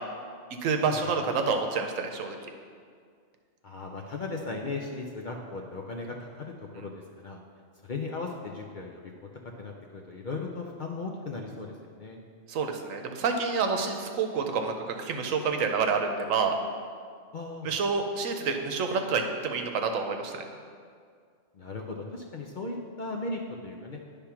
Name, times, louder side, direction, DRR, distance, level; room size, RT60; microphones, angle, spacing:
voice 1, 0.6-2.4 6.8-6.9 12.5-16.5 17.6-20.5, right 5 dB, 85° right, 5 dB, 1.1 m, -28 dB
voice 2, 3.6-7.4 7.8-9.3 9.6-12.2 17.3-17.7 21.5-24.0, left 3 dB, 50° left, 1 dB, 0.6 m, -37 dB
9.9 x 3.5 x 5.8 m, 2.1 s
omnidirectional pair, 1.3 m